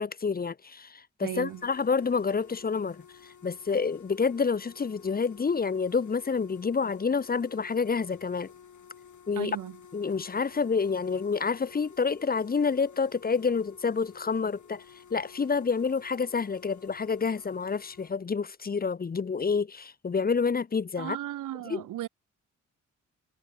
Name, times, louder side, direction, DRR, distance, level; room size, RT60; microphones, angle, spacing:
voice 1, 0.0-8.5 9.3-9.6 9.9-14.8 15.1-21.2 21.7-21.8, left 5 dB, 30° left, 0.6 m, -28 dB
voice 2, 1.2-1.6 9.4-9.8 21.0-22.1, right 13 dB, 80° right, 0.7 m, -36 dB
sound 1, 1.3-18.1, left 7 dB, 70° left, 4.8 m, -53 dB
supercardioid pair, 45°, 31 cm